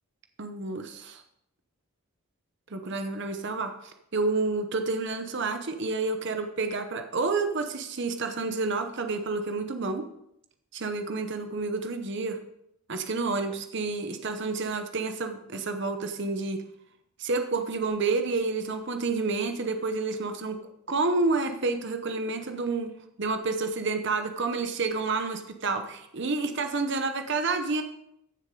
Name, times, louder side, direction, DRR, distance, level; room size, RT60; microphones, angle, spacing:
voice 1, 0.4-1.2 2.7-10.0 10.7-12.4 12.9-16.6 17.2-20.6 20.9-22.9 23.2-27.8, right 3 dB, 55° right, 6 dB, 0.8 m, -29 dB
14.5 x 6.6 x 3.8 m, 0.77 s
head